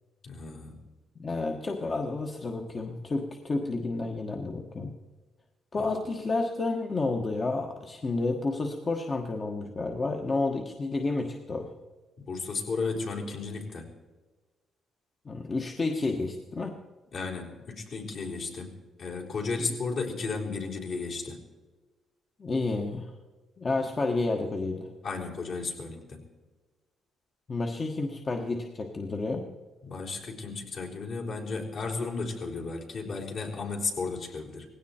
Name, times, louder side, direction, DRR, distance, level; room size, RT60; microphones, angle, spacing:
voice 1, 0.2-0.8 5.8-5.9 12.2-13.9 17.1-21.4 25.0-26.2 29.9-34.7, left 4 dB, 60° left, -1 dB, 4.0 m, -34 dB
voice 2, 1.1-4.9 5.7-11.7 15.2-16.8 22.4-23.1 23.6-24.9 27.5-29.5, left 3 dB, 35° left, 2 dB, 1.4 m, -30 dB
18.5 x 16.5 x 4.4 m, 1.3 s
cardioid pair, 90°, 0 cm